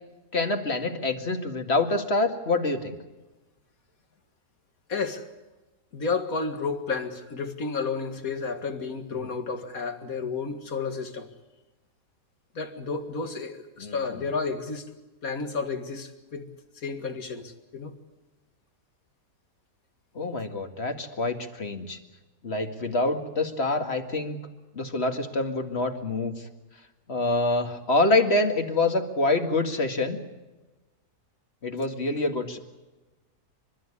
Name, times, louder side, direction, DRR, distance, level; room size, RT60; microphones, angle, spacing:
voice 1, 0.3-3.0 13.8-14.2 20.1-22.0 22.4-24.4 24.8-26.5 27.1-30.2 31.6-32.6, left 2 dB, 40° left, 6 dB, 2.3 m, -26 dB
voice 2, 4.9-5.2 5.9-11.3 12.5-14.9 15.2-16.4 16.8-17.9, left 4 dB, 60° left, 8 dB, 2.4 m, -31 dB
29.5 x 13.5 x 9.9 m, 1.1 s
omnidirectional pair, 1.7 m